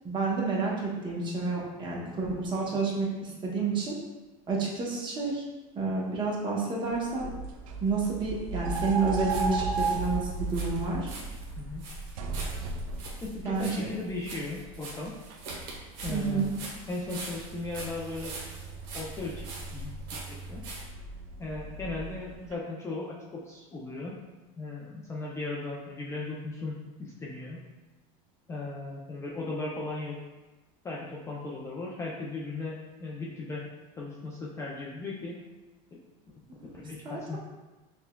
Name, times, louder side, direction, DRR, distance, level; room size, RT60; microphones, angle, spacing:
voice 1, 0.0-4.0 4.5-5.4 5.7-7.3 7.8-11.1 13.4-13.9 16.1-16.6 36.6-37.2, right 3 dB, 25° right, -3 dB, 0.8 m, -30 dB
sound 1, 6.8-22.5, right 4 dB, 90° right, 0.4 m, -36 dB
sound 2, 8.7-9.5 9.7-20.8, right 3 dB, 65° right, 1.0 m, -44 dB
voice 2, 11.6-11.9 13.2-15.1 16.0-16.5 16.9-18.3 18.9-19.9 20.3-20.6 21.4-24.2 24.6-27.6 28.5-30.2 30.8-33.7 34.0-35.4 36.3-36.4 36.7-37.4, left 3 dB, 15° left, -4 dB, 0.4 m, -37 dB
5.5 x 2.2 x 2.2 m, 1.1 s
supercardioid pair, 135°, 17 cm